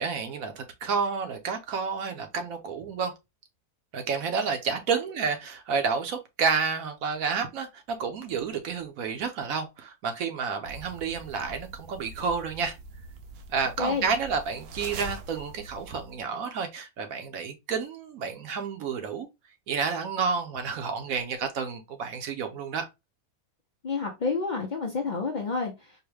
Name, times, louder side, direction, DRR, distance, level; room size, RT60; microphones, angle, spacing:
voice 1, 0.0-3.1 3.9-12.8 13.5-19.3 19.7-22.9, right 5 dB, 70° right, 1.0 m, -30 dB
sound 1, 10.7-16.3, right 4 dB, 85° right, 0.5 m, -44 dB
voice 2, 13.8-14.1 23.8-26.0, left 4 dB, 80° left, 0.4 m, -29 dB
4.6 x 2.1 x 3.2 m
omnidirectional pair, 1.7 m